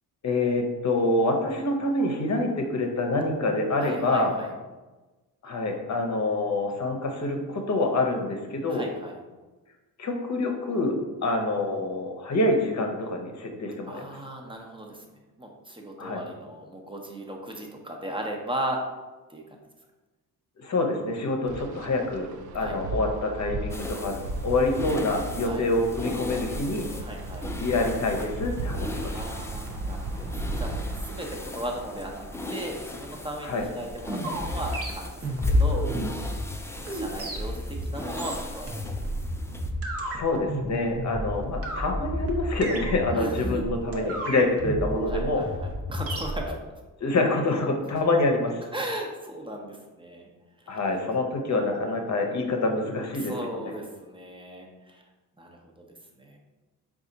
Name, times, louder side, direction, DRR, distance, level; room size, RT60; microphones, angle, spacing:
voice 1, 0.2-4.3 5.4-8.9 10.0-14.0 16.0-16.2 20.6-22.3 22.5-26.9 27.6-29.2 33.4-33.7 40.0-45.4 47.0-48.6 50.7-53.3 53.6-53.7, left 2 dB, 45° left, 3 dB, 0.8 m, -26 dB
voice 2, 3.8-4.5 8.7-9.2 13.8-15.0 15.4-18.8 19.3-19.4 22.6-22.8 25.4-25.7 27.0-27.5 29.1-36.4 36.8-38.7 39.3-39.4 43.1-43.6 45.1-46.5 48.7-50.3 50.6-50.8 53.2-55.0 55.4-55.9 56.2-56.4, right 1 dB, 15° right, 1 dB, 0.8 m, -37 dB
Wind, 21.5-31.2, right 2 dB, 70° right, 0.5 m, -35 dB
sound 1, 23.7-39.7, left 2 dB, 5° left, 0.3 m, -34 dB
sound 2, 33.6-46.4, right 1 dB, 40° right, 0.9 m, -32 dB
4.1 x 2.5 x 3.9 m, 1.2 s
cardioid pair, 70°, 38 cm